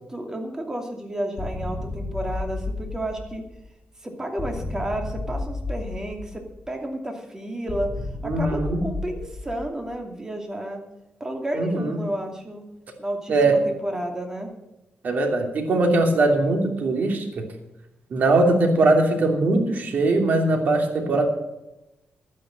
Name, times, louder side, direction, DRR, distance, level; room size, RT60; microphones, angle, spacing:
voice 1, 0.1-3.4 4.0-7.9 8.2-10.8 11.2-12.6 13.0-14.5, right 1 dB, 15° right, 3 dB, 2.6 m, -31 dB
sound 1, 1.4-3.7 4.4-6.7 7.7-9.9, left 2 dB, 45° left, 2.2 m, -33 dB
voice 2, 8.2-8.9 11.6-12.0 13.3-13.5 15.0-17.4 18.1-21.3, right 2 dB, 55° right, 3 dB, 2.8 m, -21 dB
11.5 x 9.8 x 7.6 m, 0.94 s
cardioid pair, 120°, 3 cm